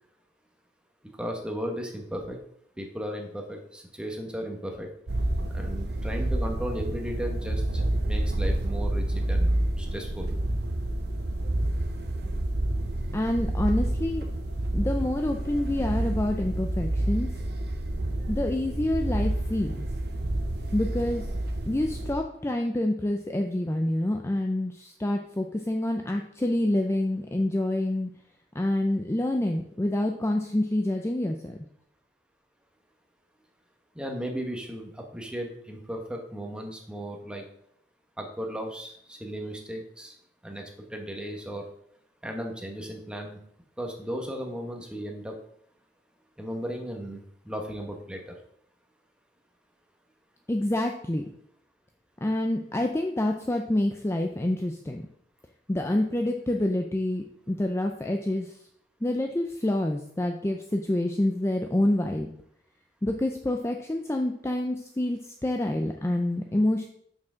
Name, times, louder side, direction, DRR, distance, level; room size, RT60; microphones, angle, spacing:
voice 1, 1.2-2.4 2.8-4.9 5.5-10.4 33.9-37.4 38.2-40.1 40.4-41.7 42.2-43.4 43.8-45.4 46.4-48.3, equal, 5° right, 2 dB, 1.1 m, -36 dB
sound 1, 5.1-22.1, right 1 dB, 65° right, 0.9 m, -29 dB
voice 2, 13.1-14.2 14.7-17.3 18.3-19.9 20.7-21.2 21.7-28.1 28.5-31.6 50.5-51.3 52.2-55.0 55.7-58.5 59.0-62.3 63.0-66.9, left 1 dB, 15° left, 3 dB, 0.5 m, -27 dB
6.0 x 4.7 x 6.2 m, 0.68 s
head